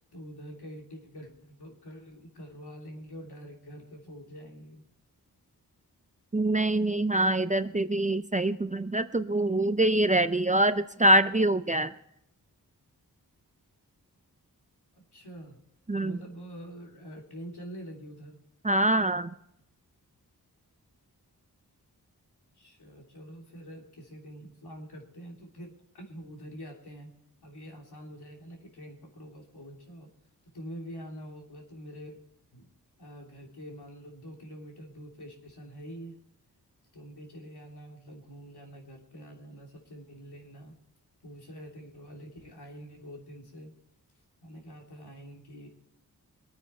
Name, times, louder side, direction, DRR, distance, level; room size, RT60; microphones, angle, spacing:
voice 1, 0.1-4.8 14.9-15.6 16.0-18.4 22.5-27.1 27.4-30.1 30.4-32.2 32.5-32.7 33.0-36.2 36.9-40.8 41.2-43.7 44.4-45.7, equal, 85° left, 0 dB, 3.0 m, -45 dB
voice 2, 6.3-11.9 15.9-16.2 18.6-19.3, right 1 dB, 20° right, 12 dB, 0.5 m, -24 dB
22.5 x 9.2 x 4.4 m, 0.77 s
wide cardioid pair, 70°, 38 cm